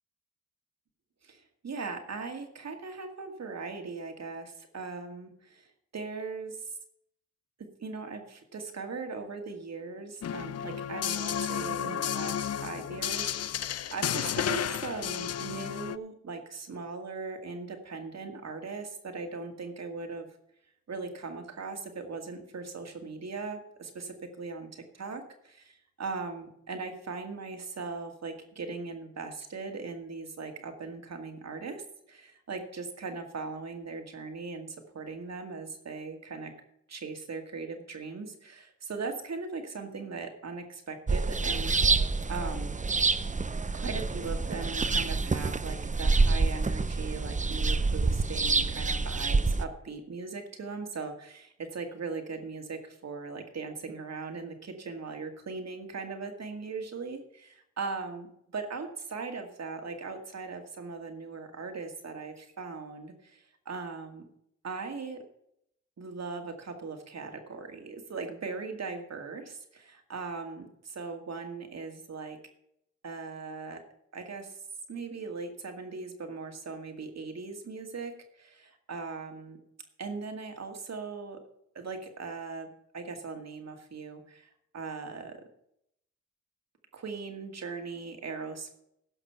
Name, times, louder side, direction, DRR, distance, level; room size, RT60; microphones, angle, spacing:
voice 1, 1.2-6.8 7.8-20.3 20.9-31.8 32.1-36.5 36.9-42.0 42.3-42.7 43.7-64.2 64.6-65.2 66.0-72.4 73.0-73.8 74.1-74.6 74.9-79.6 80.0-81.4 81.7-82.7 82.9-85.4 86.9-88.7, right 4 dB, 55° right, 4 dB, 2.2 m, -39 dB
sound 1, 10.2-16.0, left 9 dB, 55° left, 0.5 m, -32 dB
sound 2, 41.1-49.7, right 3 dB, 25° right, 0.7 m, -27 dB
16.5 x 5.9 x 5.8 m, 0.76 s
cardioid pair, 50°, 31 cm